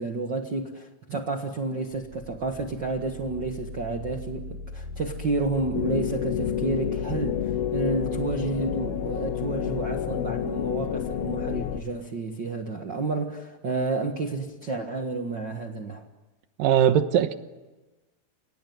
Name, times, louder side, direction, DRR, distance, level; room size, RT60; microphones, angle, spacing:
voice 1, 0.0-16.0, right 3 dB, 55° right, 1.2 m, -30 dB
sound 1, 1.9-9.6, left 3 dB, 15° right, 3.6 m, -40 dB
sound 2, 5.7-11.8, left 10 dB, 80° left, 3.0 m, -29 dB
voice 2, 16.6-17.3, right 9 dB, 70° right, 2.7 m, -20 dB
30.0 x 18.0 x 9.4 m
omnidirectional pair, 4.4 m